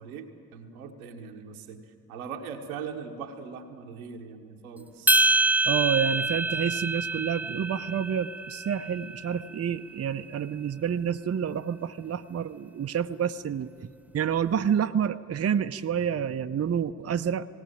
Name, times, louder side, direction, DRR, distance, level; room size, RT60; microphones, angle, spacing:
voice 1, 0.0-1.8 2.1-5.2, right 6 dB, 90° right, 4 dB, 1.2 m, -40 dB
sound 1, 5.1-9.5, right 2 dB, 5° right, 0.7 m, -26 dB
voice 2, 5.6-17.5, right 8 dB, 35° right, 10 dB, 0.7 m, -29 dB
18.0 x 17.5 x 9.9 m, 2.2 s
hypercardioid pair, 40°, 42 cm